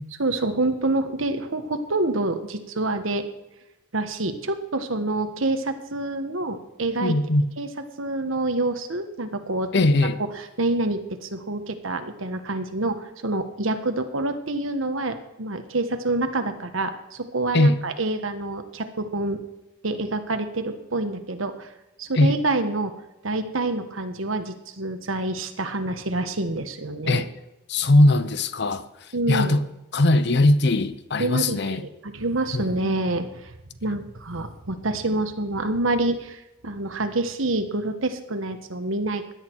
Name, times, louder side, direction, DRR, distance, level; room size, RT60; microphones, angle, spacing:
voice 1, 0.2-3.2 3.9-7.1 7.6-7.7 8.0-9.7 10.6-19.4 19.8-21.7 22.0-22.9 23.2-27.2 29.1-29.6 31.2-33.5 33.8-39.3, right 2 dB, 90° right, 1.4 m, -27 dB
voice 2, 7.0-7.5 9.7-10.2 17.5-17.8 22.2-22.3 27.1-27.3 27.7-28.8 29.3-29.6 29.9-31.8 32.5-32.9, left 2 dB, 60° left, 0.8 m, -20 dB
16.5 x 11.0 x 4.7 m
head